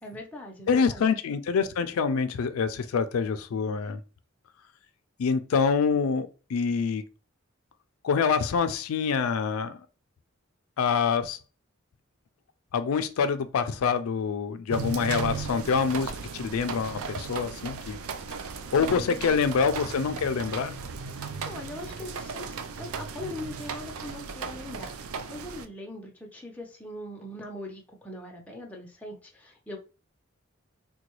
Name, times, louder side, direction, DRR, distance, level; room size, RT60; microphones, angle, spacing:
voice 1, 0.0-1.0 18.8-19.4 21.1-24.9 25.3-29.8, left 1 dB, 5° left, 0.6 m, -41 dB
voice 2, 0.7-4.0 5.2-7.0 8.0-9.8 10.8-11.4 12.7-18.0 18.7-20.8, left 5 dB, 90° left, 0.4 m, -26 dB
sound 1, 14.7-25.7, right 5 dB, 90° right, 0.4 m, -36 dB
3.8 x 2.2 x 3.0 m
head